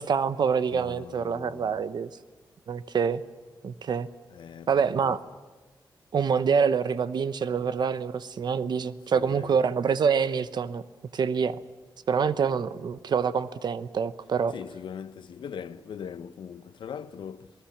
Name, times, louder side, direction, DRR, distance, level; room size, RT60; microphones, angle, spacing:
voice 1, 0.0-2.1 2.7-3.2 3.6-4.1 4.7-5.2 6.1-10.8 11.1-11.6 12.1-14.5, right 6 dB, 65° right, 0.8 m, -26 dB
voice 2, 0.7-1.8 4.3-5.2 9.1-9.6 14.5-17.5, left 7 dB, 85° left, 0.8 m, -41 dB
27.0 x 19.0 x 7.3 m
wide cardioid pair, 145°, 8 cm